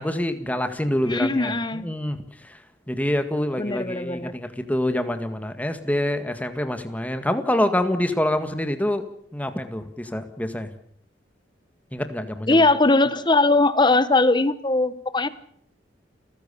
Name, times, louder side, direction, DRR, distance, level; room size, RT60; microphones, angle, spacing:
voice 1, 0.0-2.2 2.4-2.6 2.9-9.0 9.3-10.7 11.9-12.6, left 1 dB, 10° left, 8 dB, 1.9 m, -26 dB
voice 2, 1.0-1.9 3.6-4.3 12.5-15.3, left 2 dB, 25° left, 14 dB, 1.2 m, -20 dB
30.0 x 15.5 x 7.0 m, 0.66 s
head